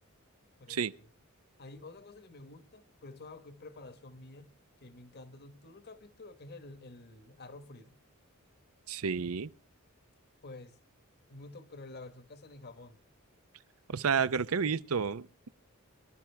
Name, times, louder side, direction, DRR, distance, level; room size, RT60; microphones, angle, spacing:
voice 1, 0.6-1.1 1.6-8.0 10.4-10.8 11.3-13.0, left 2 dB, 50° left, 1.3 m, -50 dB
voice 2, 8.9-9.5 13.9-15.5, right 6 dB, 80° right, 0.7 m, -31 dB
24.0 x 12.0 x 3.3 m
head